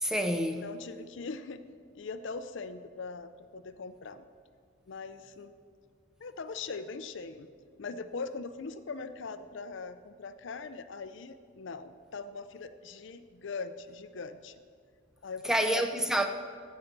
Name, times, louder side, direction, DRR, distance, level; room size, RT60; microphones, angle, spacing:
voice 1, 0.0-0.7 15.4-16.3, right 1 dB, ahead, 6 dB, 0.5 m, -28 dB
voice 2, 0.6-1.6 1.9-4.2 4.9-5.5 6.2-7.5 7.8-14.6 15.2-15.8, left 4 dB, 55° left, 11 dB, 0.5 m, -41 dB
14.5 x 5.7 x 6.6 m, 2.1 s
head